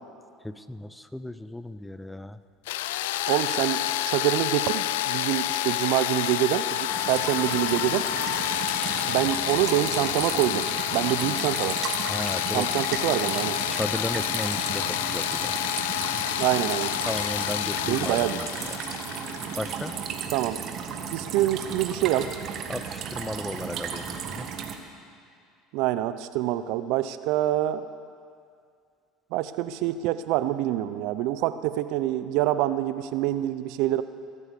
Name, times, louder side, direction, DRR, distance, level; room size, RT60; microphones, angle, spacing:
voice 1, 0.4-2.4 12.1-12.7 13.7-15.5 17.1-18.5 19.6-20.0 22.7-24.5, left 1 dB, 5° left, 13 dB, 0.7 m, -34 dB
sound 1, 2.7-20.4, left 13 dB, 80° left, 0.5 m, -29 dB
voice 2, 3.3-8.1 9.1-11.8 12.5-13.6 16.4-17.0 17.9-18.4 20.3-20.6 21.1-22.3 25.7-27.8 29.3-34.0, right 14 dB, 70° right, 13 dB, 0.6 m, -26 dB
sound 2, 6.9-24.8, right 7 dB, 55° right, 1.5 m, -35 dB
23.0 x 8.4 x 6.7 m, 2.3 s
hypercardioid pair, 85°, 0 cm